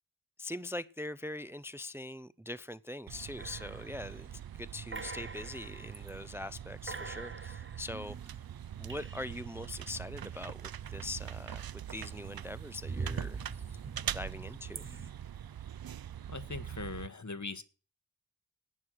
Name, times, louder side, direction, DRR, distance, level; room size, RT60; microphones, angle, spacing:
voice 1, 0.4-4.3 4.5-8.4 8.8-13.4 13.7-13.8 14.1-14.9, left 1 dB, 5° right, 0.5 m, -42 dB
sound 1, 3.1-17.1, right 10 dB, 80° right, 0.5 m, -43 dB
sound 2, 3.4-4.4 4.9-6.1 6.5-6.6 6.9-9.6 10.9-11.6 12.0-15.1, right 4 dB, 35° right, 0.9 m, -44 dB
voice 2, 16.3-17.6, left 3 dB, 55° left, 1.4 m, -40 dB
18.5 x 6.3 x 6.3 m
wide cardioid pair, 50°, 36 cm